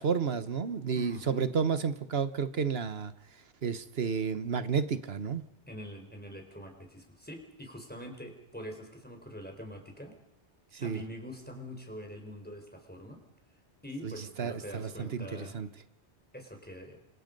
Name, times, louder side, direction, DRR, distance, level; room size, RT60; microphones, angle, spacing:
voice 1, 0.0-3.1 3.6-5.4 10.7-11.0 14.0-14.1 14.4-15.7, right 6 dB, 65° right, 12 dB, 1.4 m, -31 dB
voice 2, 0.9-1.5 5.7-10.2 10.8-13.2 13.8-15.6 16.3-17.0, equal, 10° left, 4 dB, 4.5 m, -44 dB
29.5 x 25.0 x 5.4 m, 0.77 s
omnidirectional pair, 1.2 m